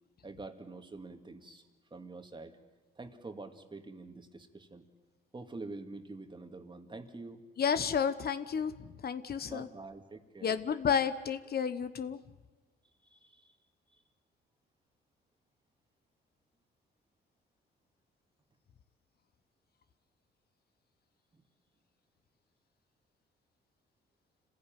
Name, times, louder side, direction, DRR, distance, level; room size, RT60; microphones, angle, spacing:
voice 1, 0.2-1.6 1.9-2.5 3.0-4.9 5.3-7.4 9.5-10.6 13.1-13.6 13.9-14.0 21.3-21.4, right 3 dB, 25° right, 6 dB, 2.2 m, -46 dB
voice 2, 7.6-8.7 9.0-9.7 10.4-12.2, left 7 dB, 50° left, 12 dB, 1.0 m, -31 dB
27.5 x 15.5 x 9.2 m, 1.2 s
cardioid pair, 90°, 20 cm